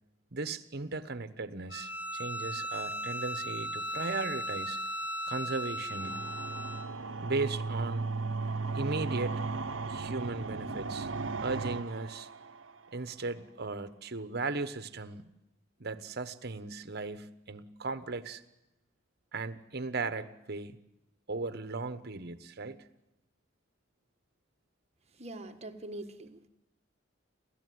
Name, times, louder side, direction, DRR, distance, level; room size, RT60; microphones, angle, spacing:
voice 1, 0.3-4.8 5.3-6.2 7.2-8.1 8.7-9.4 9.9-11.1 11.4-12.3 12.9-15.2 15.8-18.4 19.3-20.8 21.3-22.9, right 3 dB, 55° right, 11 dB, 1.2 m, -37 dB
Bowed string instrument, 1.7-6.9, equal, 65° left, 1.7 m, -37 dB
sound 1, 5.9-12.9, right 3 dB, 80° right, 0.9 m, -36 dB
voice 2, 25.1-26.5, right 2 dB, 35° right, 5 dB, 1.6 m, -43 dB
30.0 x 13.5 x 9.5 m, 0.93 s
head